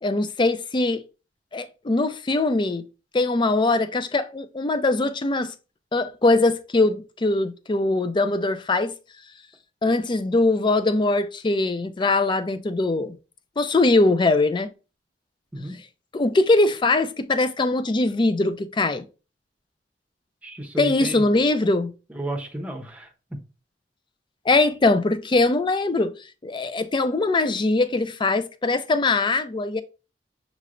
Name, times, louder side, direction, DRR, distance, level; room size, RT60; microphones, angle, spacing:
voice 1, 0.0-1.0 1.5-2.8 3.1-5.5 5.9-8.9 9.8-13.2 13.6-14.7 16.1-19.0 20.8-21.9 24.5-26.1 26.4-29.8, left 2 dB, 25° left, 0.4 m, -21 dB
voice 2, 20.4-21.3 22.1-23.1, right 1 dB, 10° right, 0.8 m, -32 dB
6.5 x 3.0 x 2.5 m
head